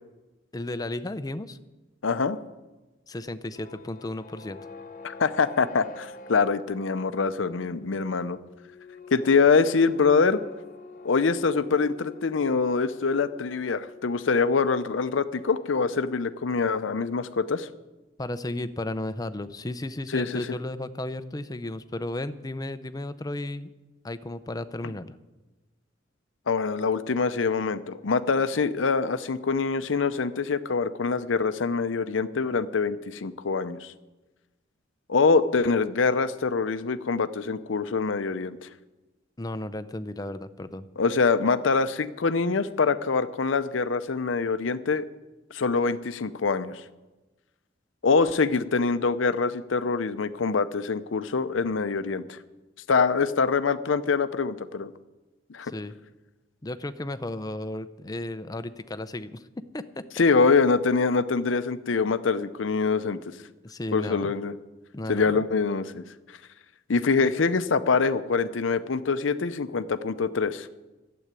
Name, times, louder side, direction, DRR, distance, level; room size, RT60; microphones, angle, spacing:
voice 1, 0.5-1.6 3.1-4.6 18.2-23.7 24.0-25.2 39.4-40.9 55.6-55.9 56.6-60.0 63.6-64.3 64.9-65.4, left 1 dB, 20° left, 12 dB, 0.6 m, -34 dB
voice 2, 2.0-2.4 5.0-8.4 9.1-10.4 11.0-17.7 20.1-20.4 26.5-33.9 35.1-38.7 41.0-45.1 45.5-46.8 48.0-52.4 52.9-54.9 55.5-55.7 60.2-63.2 63.9-64.5 65.1-66.0 66.9-70.7, left 4 dB, 85° left, 12 dB, 0.6 m, -24 dB
sound 1, 3.4-14.5, left 3 dB, 45° left, 0.9 m, -46 dB
12.0 x 7.9 x 9.7 m, 1.1 s
head